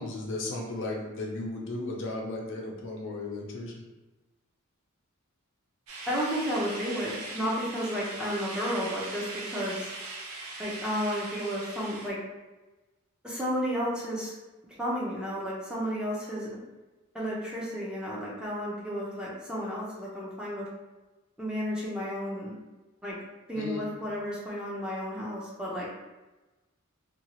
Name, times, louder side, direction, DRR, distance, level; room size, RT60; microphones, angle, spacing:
voice 1, 0.0-3.8 23.5-23.8, left 2 dB, 60° left, -1 dB, 0.6 m, -35 dB
sound 1, 5.9-12.1, right 2 dB, 90° right, 0.6 m, -40 dB
voice 2, 6.1-9.8 10.6-12.2 13.2-14.3 14.8-16.5 17.1-20.7 21.4-22.5 23.0-23.2 23.5-25.9, equal, 5° right, -6 dB, 0.6 m, -32 dB
2.7 x 2.4 x 2.9 m, 1.1 s
head